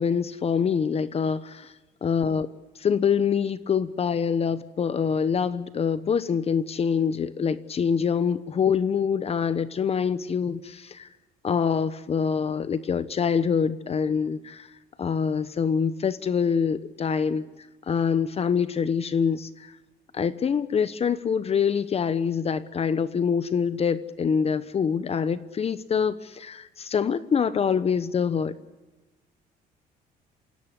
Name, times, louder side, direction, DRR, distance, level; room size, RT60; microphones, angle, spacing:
voice 1, 0.0-1.7 2.0-2.5 2.8-11.1 11.4-14.7 15.0-17.4 17.9-19.7 20.1-28.5, left 6 dB, 35° left, 14 dB, 1.1 m, -25 dB
27.0 x 17.5 x 8.2 m, 1.1 s
cardioid pair, 110°, 17 cm